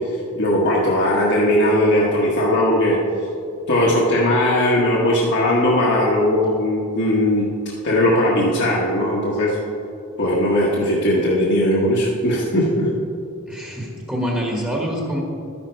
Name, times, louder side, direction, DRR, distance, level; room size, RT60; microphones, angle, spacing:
voice 1, 0.4-3.0 3.7-7.5 7.8-9.6 10.2-12.9, left 1 dB, 55° left, -5 dB, 1.5 m, -18 dB
voice 2, 13.5-15.2, equal, 5° right, -2 dB, 1.5 m, -25 dB
12.5 x 10.0 x 4.6 m, 2.5 s
head